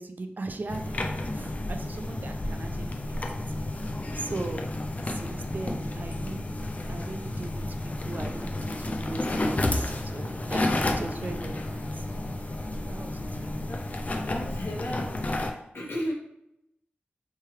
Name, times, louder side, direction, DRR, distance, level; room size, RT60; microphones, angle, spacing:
voice 1, 0.0-3.2 3.5-3.6 4.1-4.6 5.0-6.5 6.9-12.1 12.9-13.7, right 3 dB, 50° right, 6 dB, 0.3 m, -39 dB
sound 1, 0.7-15.5, left 2 dB, 40° left, 0.3 m, -31 dB
voice 2, 13.5-13.9 14.2-15.2 15.7-16.1, left 1 dB, 80° left, -3 dB, 0.9 m, -34 dB
3.1 x 2.3 x 3.1 m, 0.80 s
wide cardioid pair, 85°, 4 cm